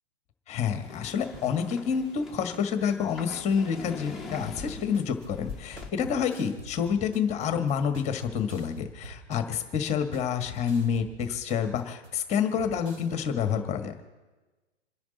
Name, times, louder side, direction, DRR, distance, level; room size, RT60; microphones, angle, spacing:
voice 1, 0.5-14.0, left 7 dB, 20° left, 7 dB, 1.5 m, -28 dB
sound 1, 0.6-5.9, left 3 dB, ahead, 1.2 m, -43 dB
sound 2, 4.4-13.1, right 2 dB, 65° right, 4.3 m, -46 dB
27.5 x 10.5 x 4.1 m, 1.2 s
figure-of-eight pair, 120°, 35 cm